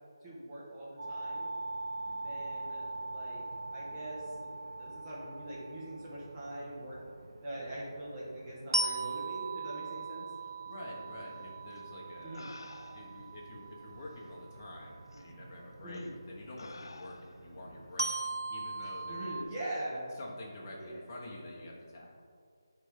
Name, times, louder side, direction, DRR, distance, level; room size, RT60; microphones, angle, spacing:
voice 1, 0.2-1.5 2.0-3.4 3.7-4.5 4.7-7.0 7.4-10.2 12.2-12.5 15.8-16.1 19.1-20.2 20.8-21.0, right 1 dB, 15° right, -8 dB, 1.5 m, -42 dB
sound 1, 1.0-19.4, right 2 dB, 65° right, 0.4 m, -40 dB
voice 2, 2.0-2.4 10.4-12.4 12.9-19.5 20.1-22.2, left 1 dB, 30° left, -3 dB, 1.1 m, -48 dB
sound 2, 11.7-11.8 12.3-13.3 14.2-14.3 15.1-15.3 15.9-16.2 16.6-17.5 18.8-19.0, left 3 dB, 75° left, 0.3 m, -51 dB
9.5 x 3.4 x 3.6 m, 2.1 s
figure-of-eight pair, 165°, 2 cm